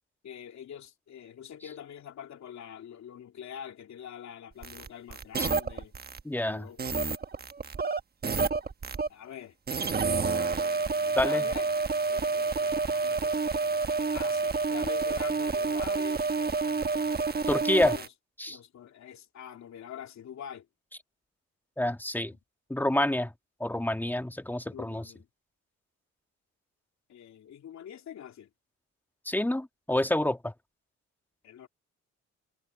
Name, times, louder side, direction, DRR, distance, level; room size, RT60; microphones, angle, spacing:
voice 1, 0.2-5.9 6.4-7.0 9.1-9.6 10.5-11.7 12.1-13.5 14.1-16.4 17.7-18.1 18.5-20.7 24.7-25.3 27.1-28.5 31.4-31.7, left 9 dB, 65° left, 3.1 m, -45 dB
sound 1, 4.6-6.2 6.8-9.1 9.7-18.1, right 4 dB, 30° right, 1.2 m, -29 dB
voice 2, 6.3-6.7 11.2-11.4 17.5-18.0 18.4-18.6 21.8-22.3 22.7-23.3 23.6-25.0 29.3-30.5, left 1 dB, 5° left, 1.7 m, -28 dB
cardioid pair, 90°, 30 cm